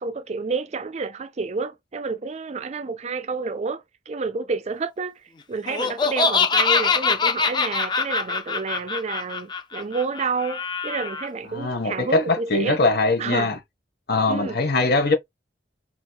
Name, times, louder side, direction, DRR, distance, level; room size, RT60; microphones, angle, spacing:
voice 1, 0.0-12.8 13.2-13.5 14.3-14.6, right 4 dB, 35° right, 0.4 m, -30 dB
Laughter, 5.7-11.3, left 5 dB, 25° left, 0.4 m, -23 dB
voice 2, 11.5-13.6 14.1-15.1, left 3 dB, 55° left, 1.0 m, -21 dB
4.2 x 3.0 x 2.2 m
head